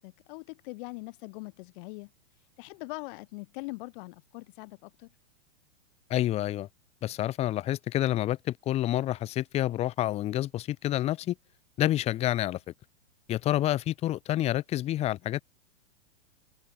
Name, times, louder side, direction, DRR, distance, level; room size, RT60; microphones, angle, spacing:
voice 1, 0.0-2.1 2.6-5.1, left 26 dB, 45° left, 1.9 m, -42 dB
voice 2, 6.1-6.7 7.0-11.3 11.8-12.7 13.3-15.4, left 13 dB, 15° left, 0.7 m, -28 dB
hypercardioid pair, 140°, 37 cm